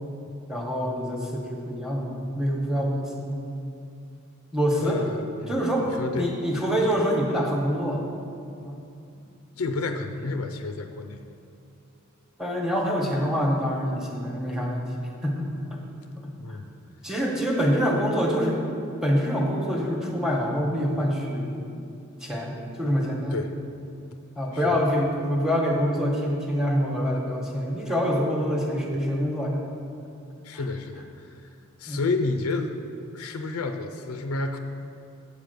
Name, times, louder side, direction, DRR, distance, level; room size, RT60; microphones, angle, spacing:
voice 1, 0.5-3.4 4.5-5.0 5.5-5.9 6.2-8.1 8.6-8.8 12.4-15.8 16.2-16.6 17.0-18.6 19.0-21.7 22.2-23.4 24.3-29.6 30.5-30.6 31.9-32.0, equal, ahead, -1 dB, 1.1 m, -26 dB
voice 2, 4.8-5.6 5.9-6.4 9.6-11.2 16.4-16.7 23.3-23.5 24.5-24.8 30.4-31.3 31.8-32.8 33.1-34.6, left 3 dB, 85° left, 6 dB, 0.5 m, -30 dB
8.4 x 5.0 x 6.6 m, 2.5 s
head